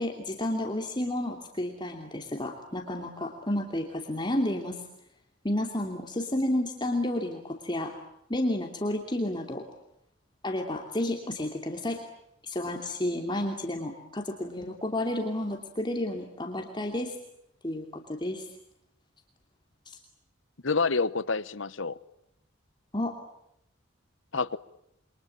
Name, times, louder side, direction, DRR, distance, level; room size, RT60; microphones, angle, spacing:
voice 1, 0.0-4.9 5.4-8.0 8.3-9.7 10.4-12.0 12.4-17.2 17.6-18.5 19.9-20.0 22.9-23.2, left 1 dB, 25° left, 3 dB, 2.9 m, -31 dB
voice 2, 20.6-22.0 24.3-24.6, left 4 dB, 70° left, 17 dB, 1.1 m, -27 dB
28.5 x 24.0 x 8.6 m, 0.78 s
head